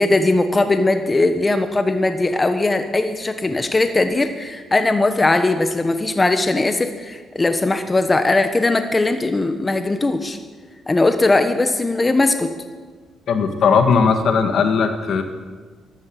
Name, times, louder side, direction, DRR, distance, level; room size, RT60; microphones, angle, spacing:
voice 1, 0.0-10.4 10.9-12.5, left 2 dB, 20° left, 8 dB, 1.1 m, -19 dB
voice 2, 13.3-15.2, left 5 dB, 65° left, 7 dB, 1.8 m, -17 dB
12.5 x 12.0 x 7.8 m, 1.5 s
cardioid pair, 90°, 0 cm